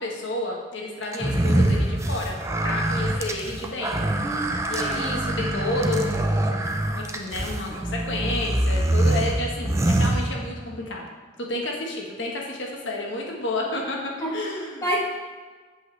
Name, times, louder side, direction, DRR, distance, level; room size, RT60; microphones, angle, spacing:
voice 1, 0.0-4.1 4.7-11.1 11.4-14.9, left 2 dB, 75° left, -1 dB, 1.3 m, -31 dB
sound 1, 1.1-10.8, right 1 dB, 15° right, 0.5 m, -24 dB
voice 2, 4.2-5.2 14.2-14.3 14.8-15.0, right 1 dB, 15° left, -5 dB, 2.0 m, -29 dB
8.1 x 8.0 x 3.3 m, 1.4 s
head